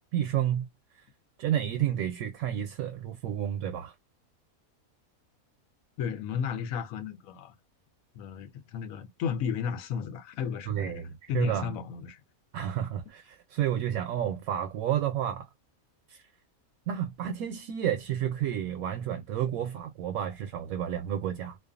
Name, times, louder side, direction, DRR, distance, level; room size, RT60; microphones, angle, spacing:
voice 1, 0.1-0.7 0.9-1.0 1.4-3.9 10.7-11.7 12.5-15.5 16.1-16.2 16.9-21.6, right 10 dB, 80° right, 1.0 m, -31 dB
voice 2, 6.0-7.6 8.1-12.2, left 7 dB, 75° left, 1.0 m, -34 dB
2.5 x 2.3 x 2.4 m
omnidirectional pair, 1.5 m